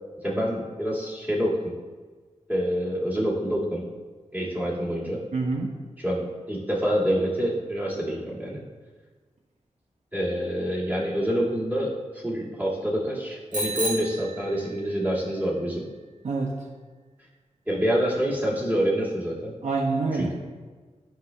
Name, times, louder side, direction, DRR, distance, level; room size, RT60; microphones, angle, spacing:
voice 1, 0.2-1.7 2.5-3.8 4.3-5.2 6.0-8.6 10.1-15.8 17.7-19.5 20.1-20.3, equal, 15° right, -5 dB, 1.9 m, -27 dB
voice 2, 5.3-5.7 16.2-16.5 19.6-20.3, right 3 dB, 65° right, 0 dB, 0.8 m, -26 dB
Bicycle bell, 13.5-15.1, right 1 dB, 85° right, 1.3 m, -32 dB
11.5 x 5.6 x 2.2 m, 1.4 s
wide cardioid pair, 105°, 13 cm